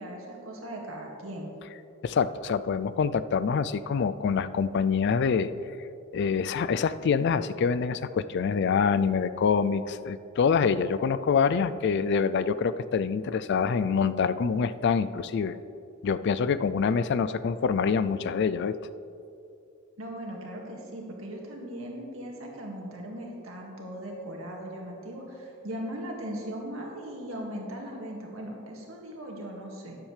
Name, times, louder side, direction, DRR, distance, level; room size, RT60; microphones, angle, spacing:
voice 1, 0.0-1.5 20.0-30.0, right 1 dB, 75° right, -1 dB, 2.0 m, -38 dB
voice 2, 2.0-5.5 6.1-15.5 16.0-18.8, left 6 dB, 55° left, 14 dB, 0.3 m, -25 dB
12.5 x 10.5 x 3.3 m, 2.7 s
head